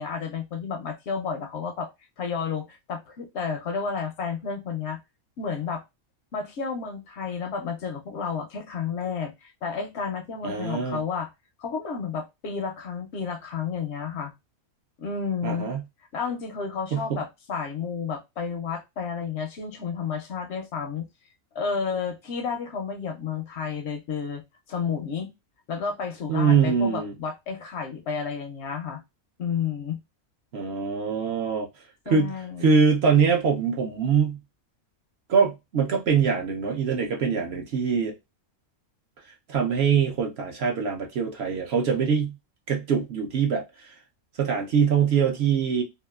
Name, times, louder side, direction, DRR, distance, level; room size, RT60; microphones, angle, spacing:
voice 1, 0.0-1.9 2.2-5.0 5.4-5.8 6.3-11.3 11.6-14.3 15.0-15.7 16.1-21.1 21.5-24.4 24.7-25.3 25.7-29.0 29.4-30.0 32.1-32.7, left 6 dB, 65° left, 0.7 m, -31 dB
voice 2, 10.4-11.0 15.4-15.8 16.9-17.2 26.3-27.1 30.5-31.7 32.1-34.4 35.3-38.1 39.5-42.4 42.7-43.9 44.4-45.8, right 6 dB, 60° right, 0.7 m, -23 dB
2.8 x 2.3 x 2.2 m
omnidirectional pair, 1.5 m